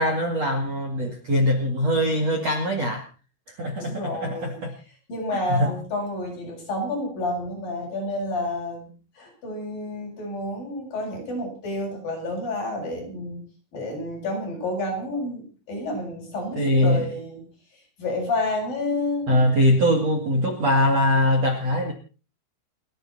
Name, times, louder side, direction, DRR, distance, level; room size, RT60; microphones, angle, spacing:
voice 1, 0.0-3.0 3.5-4.7 5.3-5.7 16.6-17.0 19.3-21.9, left 1 dB, 40° right, 3 dB, 2.7 m, -22 dB
voice 2, 3.8-4.6 5.1-13.4 13.7-17.4 18.0-19.3, left 1 dB, 45° left, -1 dB, 9.1 m, -30 dB
29.5 x 10.5 x 4.3 m, 0.37 s
omnidirectional pair, 5.8 m